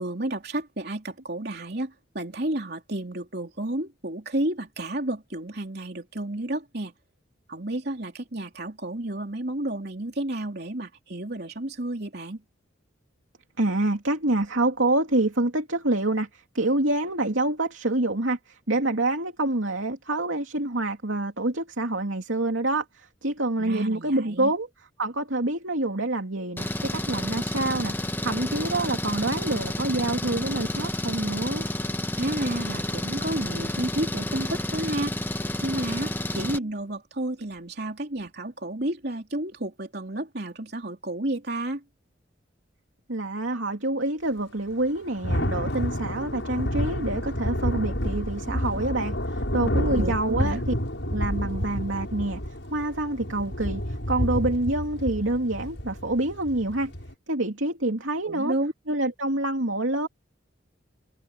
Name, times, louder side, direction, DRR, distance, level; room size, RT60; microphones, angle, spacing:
voice 1, 0.0-6.9 7.5-12.4 23.6-24.5 32.1-35.2 35.6-41.8 50.0-50.6 58.3-58.7, right 1 dB, 55° right, 3.5 m, -31 dB
voice 2, 13.6-24.7 25.0-27.9 28.2-31.7 43.1-50.6 51.0-52.4 52.7-56.9 57.3-58.5 58.9-60.1, right 2 dB, 80° right, 2.8 m, -27 dB
Engine, 26.6-36.6, left 1 dB, 10° left, 1.3 m, -30 dB
Thunder / Rain, 44.7-57.1, equal, 65° left, 7.8 m, -29 dB
head